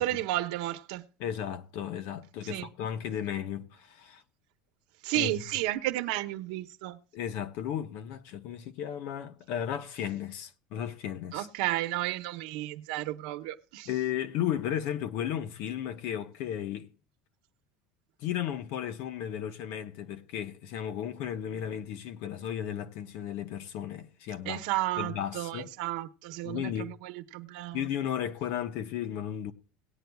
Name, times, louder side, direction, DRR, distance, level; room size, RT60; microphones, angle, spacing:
voice 1, 0.0-1.1 2.5-2.7 5.0-7.0 11.3-13.9 24.4-27.9, right 16 dB, 75° right, 0.9 m, -32 dB
voice 2, 1.2-4.2 5.1-5.4 7.1-11.5 13.9-16.9 18.2-24.6 25.0-25.7 26.4-26.9 27.7-29.5, left 10 dB, 55° left, 1.0 m, -34 dB
18.5 x 9.2 x 2.3 m
cardioid pair, 165°, 4 cm